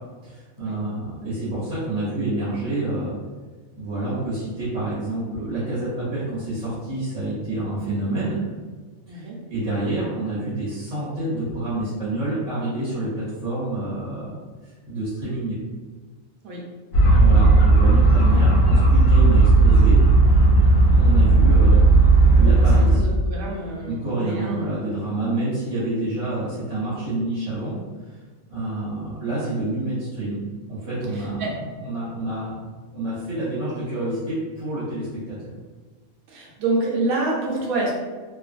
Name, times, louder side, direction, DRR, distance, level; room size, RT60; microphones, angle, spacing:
voice 1, 0.2-3.1 3.7-8.4 9.1-14.3 14.6-15.6 17.2-20.0 21.0-21.8 22.1-23.0 23.9-28.2 28.5-30.4 30.7-31.5 31.8-32.5 32.9-35.5, right 2 dB, 65° right, -11 dB, 1.3 m, -28 dB
voice 2, 9.1-9.4 16.4-16.6 22.5-24.7 31.4-31.5 36.3-37.9, right 2 dB, 85° right, -3 dB, 1.2 m, -27 dB
sound 1, 16.9-23.0, right 2 dB, 75° left, 1.0 m, -14 dB
2.9 x 2.4 x 2.4 m, 1.4 s
omnidirectional pair, 1.4 m